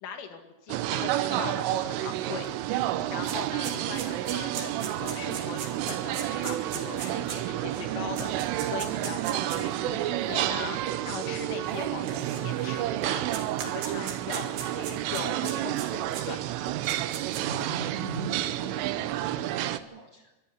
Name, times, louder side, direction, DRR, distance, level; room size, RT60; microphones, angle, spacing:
voice 1, 0.0-2.5 2.8-13.2 13.6-16.4, left 7 dB, 75° left, 5 dB, 4.7 m, -40 dB
sound 1, 0.7-19.8, right 14 dB, 85° right, 3.4 m, -30 dB
sound 2, 2.4-2.5 2.8-9.7 10.5-10.6 11.7-12.7 13.0-16.2 16.7-17.6, right 6 dB, 60° right, 4.7 m, -38 dB
voice 2, 17.4-20.3, right 4 dB, 45° right, 2 dB, 2.1 m, -38 dB
24.0 x 15.0 x 9.4 m, 1.0 s
omnidirectional pair, 5.7 m